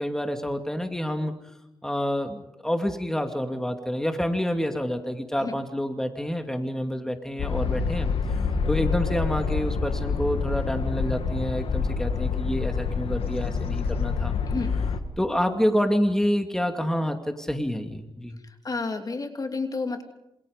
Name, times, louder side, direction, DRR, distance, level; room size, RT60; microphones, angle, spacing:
voice 1, 0.0-1.3 1.8-8.1 8.7-14.4 15.2-18.4, equal, 5° left, 5 dB, 2.6 m, -28 dB
sound 1, 7.4-15.0, left 5 dB, 85° left, 2.1 m, -27 dB
voice 2, 18.6-20.0, left 3 dB, 40° left, 5 dB, 3.2 m, -30 dB
27.5 x 27.5 x 5.3 m, 0.87 s
cardioid pair, 85°, 9 cm